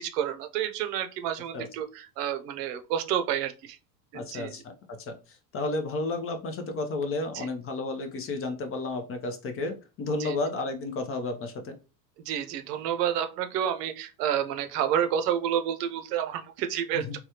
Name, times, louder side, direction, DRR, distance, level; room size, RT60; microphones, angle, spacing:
voice 1, 0.0-3.8 4.1-4.5 7.3-7.5 10.2-10.4 12.3-17.2, right 9 dB, 70° right, 8 dB, 0.7 m, -29 dB
voice 2, 4.1-4.6 5.0-5.1 5.5-11.8 16.9-17.2, left 2 dB, 30° left, 6 dB, 0.5 m, -32 dB
3.3 x 2.2 x 2.8 m, 0.31 s
hypercardioid pair, 95°, 49 cm